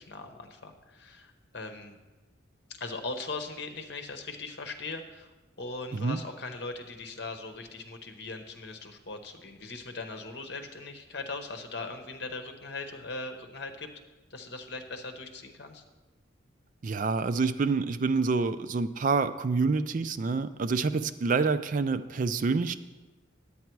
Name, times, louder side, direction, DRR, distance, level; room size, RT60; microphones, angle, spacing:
voice 1, 0.0-2.0 2.8-13.9 14.3-15.8, left 3 dB, 60° left, 6 dB, 1.0 m, -40 dB
voice 2, 16.8-22.8, right 4 dB, 40° right, 12 dB, 0.3 m, -27 dB
10.0 x 8.5 x 4.6 m, 1.2 s
head